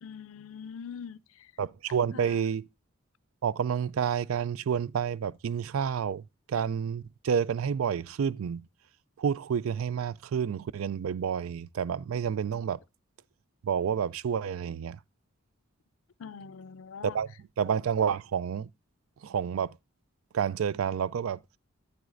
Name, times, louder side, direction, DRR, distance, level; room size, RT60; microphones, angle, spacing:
voice 1, 0.0-1.5 2.1-2.5 16.2-17.2, left 6 dB, 75° left, 0.4 m, -43 dB
voice 2, 1.6-2.7 3.4-8.6 9.2-12.8 13.6-15.0 17.0-17.3 17.6-18.7 19.2-19.8 20.3-21.4, right 7 dB, 80° right, 0.4 m, -29 dB
9.5 x 9.2 x 2.5 m
head